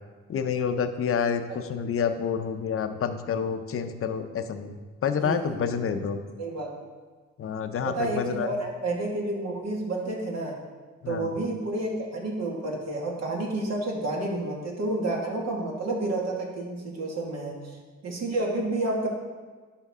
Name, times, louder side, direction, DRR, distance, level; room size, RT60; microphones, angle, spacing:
voice 1, 0.3-4.8 5.0-6.2 7.4-8.5 11.0-11.3, left 7 dB, 45° left, 8 dB, 0.7 m, -28 dB
voice 2, 5.2-5.8 6.4-6.7 7.9-10.6 11.1-17.7 18.0-19.1, right 2 dB, 60° right, -1 dB, 1.9 m, -30 dB
11.0 x 4.5 x 3.6 m, 1.4 s
cardioid pair, 90°, 30 cm